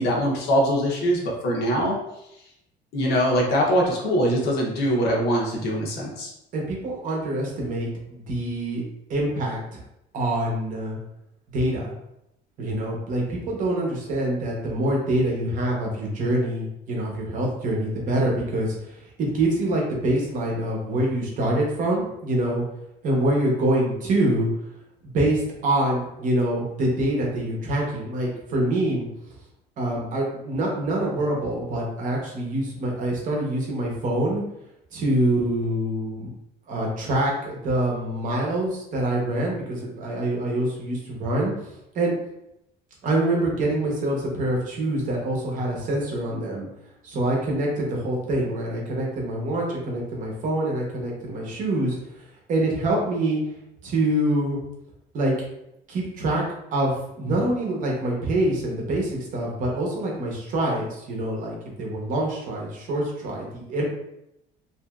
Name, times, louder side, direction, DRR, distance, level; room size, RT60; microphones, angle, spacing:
voice 1, 0.0-1.9 2.9-6.3, equal, 65° left, -2 dB, 0.8 m, -22 dB
voice 2, 6.5-8.8 9.1-9.8 10.1-11.0 11.5-11.9 12.6-22.6 23.0-24.5 25.0-29.1 29.8-34.4 34.9-36.3 36.7-42.2 43.0-46.7 47.0-53.4 53.8-54.6 55.1-55.3 55.9-56.4 56.7-63.9, right 1 dB, 45° right, -1 dB, 0.8 m, -25 dB
2.9 x 2.6 x 2.3 m, 0.83 s
cardioid pair, 170°, 18 cm